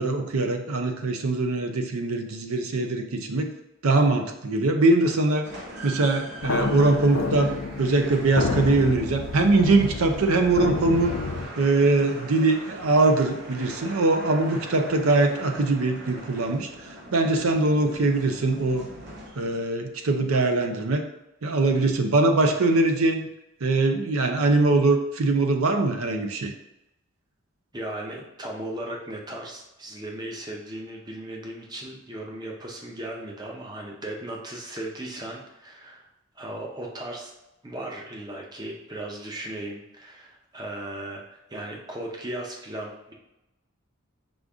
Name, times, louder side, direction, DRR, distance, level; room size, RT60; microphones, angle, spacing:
voice 1, 0.0-3.5 3.8-5.4 5.8-11.2 11.6-16.7 17.1-18.9 19.4-21.0 21.4-23.2 23.6-26.5, right 2 dB, 80° right, 5 dB, 0.6 m, -22 dB
sound 1, 5.4-19.7, right 1 dB, 50° right, 1.0 m, -41 dB
sound 2, 6.4-11.5, left 3 dB, 65° left, 0.4 m, -29 dB
voice 2, 27.7-36.1 36.4-37.3 37.6-43.1, right 1 dB, 20° right, -1 dB, 0.6 m, -36 dB
5.1 x 2.5 x 3.5 m, 0.92 s
head